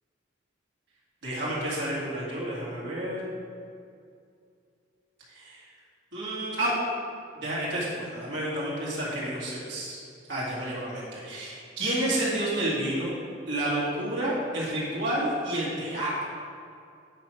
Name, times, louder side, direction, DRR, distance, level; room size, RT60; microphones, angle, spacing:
voice 1, 1.2-3.2 5.3-5.7 6.1-6.8 7.3-10.0 10.3-13.1 13.5-16.1, right 1 dB, 70° right, -8 dB, 2.3 m, -30 dB
8.9 x 4.5 x 6.3 m, 2.4 s
head